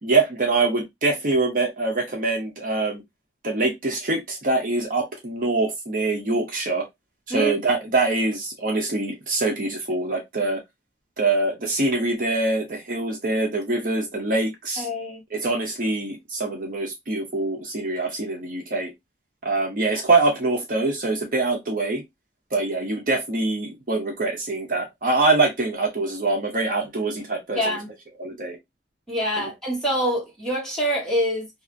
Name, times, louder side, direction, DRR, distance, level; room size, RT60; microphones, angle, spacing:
voice 1, 0.0-3.0 3.4-6.8 7.3-10.6 11.2-14.9 15.3-18.9 19.4-22.0 22.5-27.6 28.2-28.6 29.4-29.5, right 3 dB, 50° right, 0.7 m, -24 dB
voice 2, 14.8-15.2 19.9-20.0 27.5-27.9 29.1-31.5, equal, 5° left, 1.3 m, -25 dB
2.7 x 2.4 x 2.5 m
head